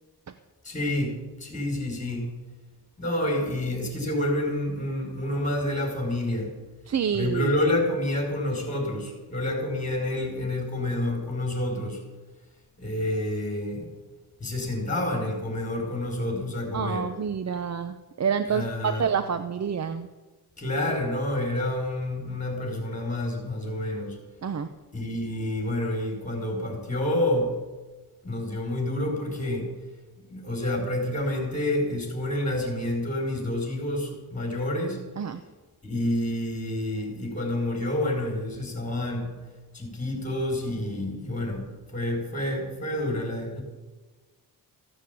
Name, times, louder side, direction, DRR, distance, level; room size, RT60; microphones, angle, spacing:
voice 1, 0.6-2.3 3.0-6.5 7.1-12.0 12.8-13.9 14.4-17.1 18.5-19.1 20.6-24.2 24.9-27.5 28.2-29.7 30.3-35.0 35.8-39.3 39.7-43.6, left 1 dB, 20° left, 2 dB, 5.3 m, -28 dB
voice 2, 6.9-7.5 16.7-20.1 24.4-24.7 35.2-35.4, right 7 dB, 40° right, 10 dB, 0.8 m, -28 dB
15.5 x 9.3 x 8.5 m, 1.2 s
cardioid pair, 105°, 40 cm